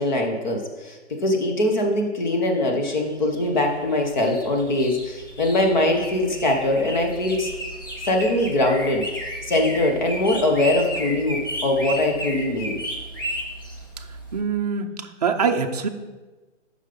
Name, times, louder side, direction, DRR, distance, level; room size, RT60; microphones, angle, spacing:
voice 1, 0.0-7.5 8.0-9.0 9.4-12.8, left 1 dB, 40° left, 2 dB, 1.3 m, -22 dB
sound 1, 2.5-14.4, equal, 20° left, 0.5 m, -34 dB
voice 2, 14.3-14.9 15.2-15.9, right 5 dB, 35° right, 4 dB, 0.6 m, -23 dB
7.3 x 5.5 x 5.2 m, 1.2 s
hypercardioid pair, 165°, 36 cm